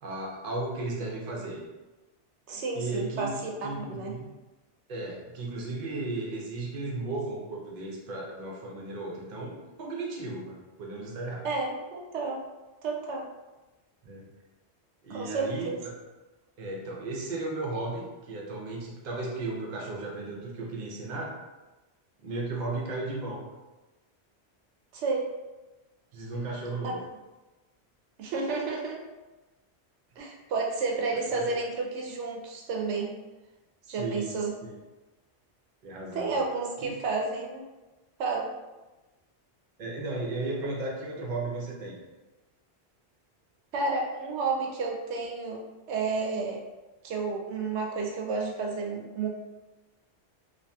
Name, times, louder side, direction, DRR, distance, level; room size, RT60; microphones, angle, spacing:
voice 1, 0.0-1.6 2.7-4.3 4.9-11.5 14.0-14.3 15.0-15.9 16.6-21.3 22.2-23.4 26.1-27.0 31.3-31.4 33.8-34.3 34.6-34.7 35.8-36.3 36.8-36.9 39.8-42.0, right 2 dB, 50° right, -2 dB, 0.7 m, -35 dB
voice 2, 2.5-4.1 11.4-12.4 12.8-13.3 15.1-15.8 24.9-25.3 26.8-27.0 28.2-29.0 30.2-33.1 33.9-34.5 36.1-37.7 38.2-38.5 43.7-45.6 45.9-46.6 47.0-49.3, right 4 dB, 85° right, 0 dB, 0.9 m, -31 dB
2.7 x 2.7 x 2.2 m, 1.1 s
omnidirectional pair, 1.1 m